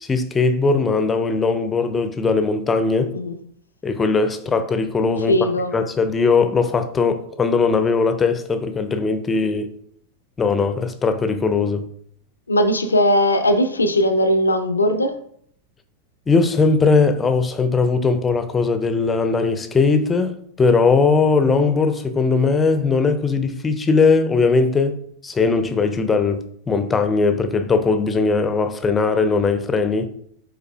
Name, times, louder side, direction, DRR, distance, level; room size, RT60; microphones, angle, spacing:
voice 1, 0.0-3.1 3.8-5.5 5.7-9.7 10.4-11.9 16.3-25.0 25.2-30.1, left 4 dB, 15° left, 0.4 m, -19 dB
voice 2, 5.3-5.7 12.5-15.2, equal, 75° left, 0.4 m, -18 dB
5.3 x 3.8 x 2.2 m
figure-of-eight pair, 90°, 0 cm